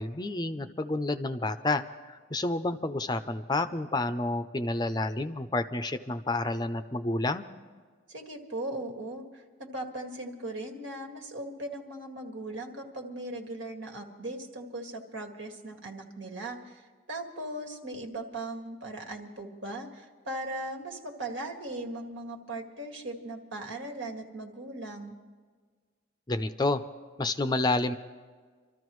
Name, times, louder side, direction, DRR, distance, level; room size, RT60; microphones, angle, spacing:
voice 1, 0.0-7.5 26.3-26.8 27.2-27.9, left 2 dB, 20° left, 10 dB, 0.5 m, -29 dB
voice 2, 8.1-25.1, right 1 dB, 75° right, 3 dB, 2.0 m, -38 dB
26.5 x 13.5 x 3.1 m, 1.5 s
head